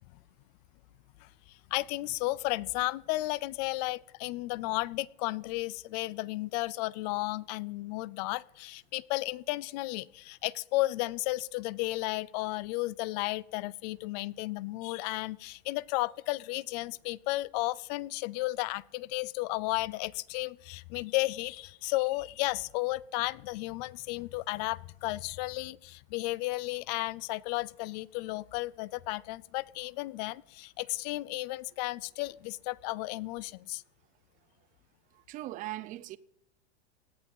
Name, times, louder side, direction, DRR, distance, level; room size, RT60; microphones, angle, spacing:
voice 1, 1.2-33.8, left 20 dB, 40° left, 0.5 m, -33 dB
voice 2, 35.3-36.2, right 15 dB, 25° right, 0.5 m, -39 dB
18.0 x 11.5 x 5.5 m
supercardioid pair, 150°, 33 cm